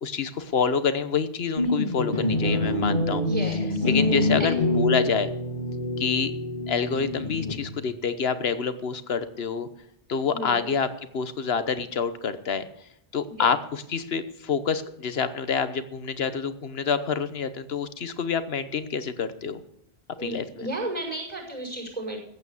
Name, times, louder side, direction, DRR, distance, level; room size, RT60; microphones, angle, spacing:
voice 1, 0.0-3.2 3.8-5.3 6.0-6.3 6.7-9.7 10.1-10.9 11.1-12.7 13.1-19.6 20.2-20.7, left 6 dB, 75° left, 12 dB, 1.2 m, -27 dB
sound 1, 1.6-7.9, left 2 dB, 50° left, 2.2 m, -26 dB
voice 2, 3.2-3.9 4.4-4.5 10.3-10.7 13.3-13.5 20.2-22.2, right 1 dB, 40° right, 0 dB, 5.8 m, -33 dB
15.0 x 8.7 x 7.1 m, 0.76 s
omnidirectional pair, 1.0 m